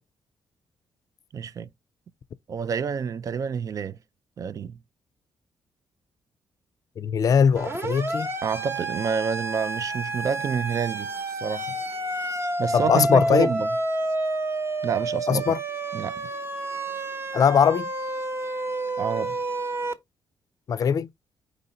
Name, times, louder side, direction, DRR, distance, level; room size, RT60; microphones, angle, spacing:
voice 1, 1.3-1.7 2.5-4.0 4.4-4.8 8.4-11.7 12.6-13.7 14.8-15.4 15.9-16.3 19.0-19.4, right 6 dB, 50° right, 0.3 m, -28 dB
voice 2, 7.0-8.3 12.7-13.5 15.3-15.6 17.3-17.9 20.7-21.1, left 7 dB, 50° left, 0.4 m, -20 dB
Siren, 7.6-19.9, right 2 dB, 30° right, 0.9 m, -29 dB
4.9 x 2.6 x 3.8 m
cardioid pair, 80°, 8 cm